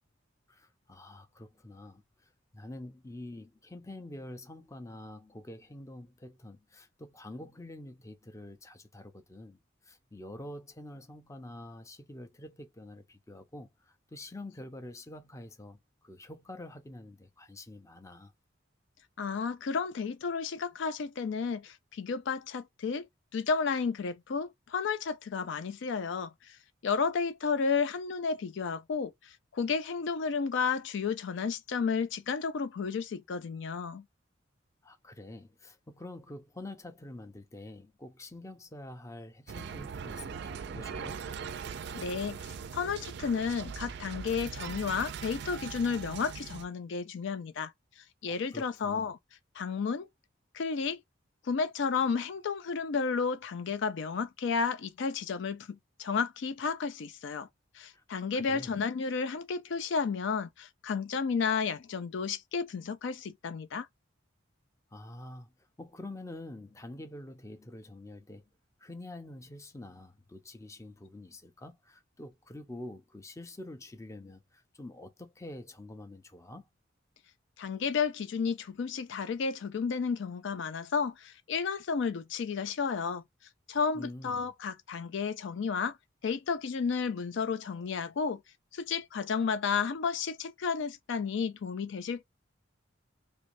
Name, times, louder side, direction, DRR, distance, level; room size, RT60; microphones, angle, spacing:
voice 1, 0.5-18.3 34.8-41.2 48.3-49.1 57.9-58.0 58.3-58.7 64.9-68.5 68.8-76.7 83.9-84.5, left 1 dB, 15° left, 0.6 m, -47 dB
voice 2, 19.2-23.0 23.3-26.6 26.8-34.0 41.9-49.2 49.5-50.1 50.5-51.0 51.4-57.5 57.7-63.9 77.6-83.2 83.7-86.0 86.2-88.4 88.7-92.2, left 5 dB, 65° left, 0.4 m, -32 dB
sound 1, 39.5-46.7, right 6 dB, 60° right, 0.4 m, -40 dB
3.3 x 3.0 x 2.5 m
head